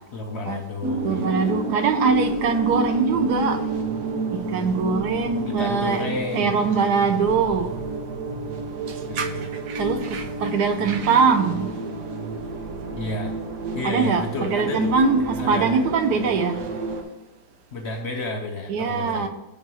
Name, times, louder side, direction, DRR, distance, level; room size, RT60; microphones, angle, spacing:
voice 1, 0.1-1.5 5.5-6.6 9.0-9.5 13.0-13.3 13.7-14.9 15.4-15.8 17.7-19.3, left 2 dB, 55° left, 0.7 m, -31 dB
sound 1, 0.8-17.0, right 2 dB, 55° right, 0.9 m, -30 dB
voice 2, 1.0-3.7 4.3-6.0 6.3-7.7 9.1-9.3 9.7-11.7 13.8-16.7 18.7-19.3, right 5 dB, 75° right, 1.2 m, -22 dB
6.5 x 3.5 x 6.1 m
omnidirectional pair, 1.8 m